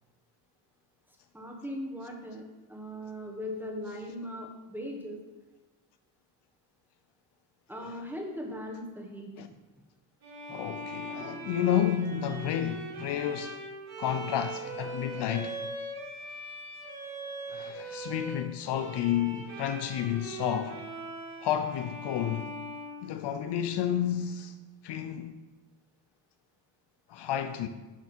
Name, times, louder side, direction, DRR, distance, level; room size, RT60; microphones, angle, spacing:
voice 1, 1.3-5.2 7.7-9.3, equal, 5° right, 1.4 m, -39 dB
Bowed string instrument, 10.2-23.7, right 2 dB, 50° right, 2.4 m, -41 dB
voice 2, 10.5-13.6 14.0-15.6 17.5-20.8 21.4-22.5 23.0-24.5 24.8-25.4 27.1-27.7, left 10 dB, 65° left, 0.6 m, -31 dB
10.5 x 3.5 x 4.4 m
cardioid pair, 100°, 44 cm